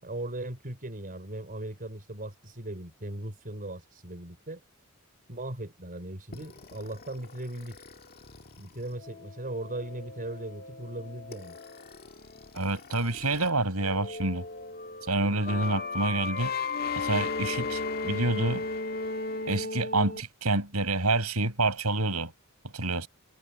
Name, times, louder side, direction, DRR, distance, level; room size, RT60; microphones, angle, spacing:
voice 1, 0.0-4.6 5.3-7.8 8.6-11.6, right 1 dB, 40° right, 4.7 m, -38 dB
sound 1, 6.3-13.5 13.8-20.2, left 4 dB, 45° left, 1.9 m, -36 dB
voice 2, 12.5-14.4 15.1-16.5 17.0-18.6 19.4-22.3 22.7-23.1, right 2 dB, 85° right, 7.5 m, -28 dB
head